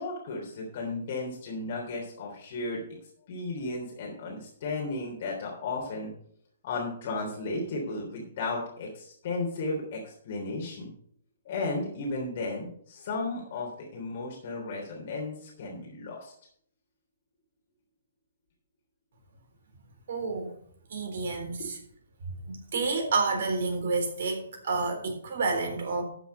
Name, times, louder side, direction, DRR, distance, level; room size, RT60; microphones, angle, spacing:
voice 1, 0.0-2.8 3.3-6.1 6.6-10.9 11.5-16.3, left 3 dB, 50° left, -1 dB, 3.4 m, -34 dB
voice 2, 20.1-20.5 20.9-21.6 22.5-26.0, right 3 dB, 55° right, 4 dB, 3.7 m, -29 dB
13.5 x 7.0 x 5.4 m, 0.64 s
figure-of-eight pair, 125°, 0 cm